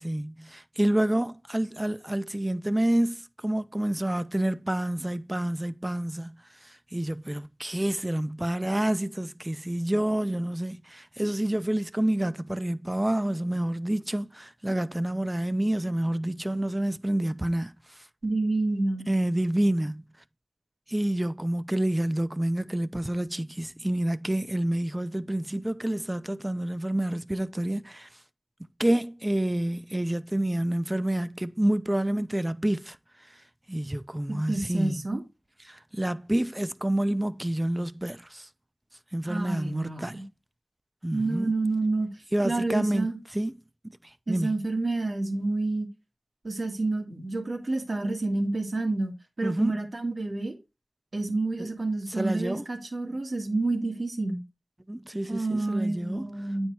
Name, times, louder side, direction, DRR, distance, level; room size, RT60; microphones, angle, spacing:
voice 1, 0.0-6.4 6.6-17.7 19.1-20.0 20.9-28.1 28.8-33.0 33.7-35.0 35.6-38.5 39.1-40.2 41.0-41.5 42.3-43.1 43.3-43.5 44.3-44.5 49.4-49.8 51.6-51.7 52.1-52.7 54.9-56.2, right 1 dB, 20° right, 0.6 m, -28 dB
voice 2, 18.2-19.1 34.5-35.2 39.3-40.2 41.1-42.1 42.4-43.2 44.3-45.9 46.4-50.6 51.1-54.4 55.3-56.7, right 2 dB, 75° right, 2.0 m, -29 dB
9.2 x 4.4 x 4.6 m
wide cardioid pair, 45°, 0 cm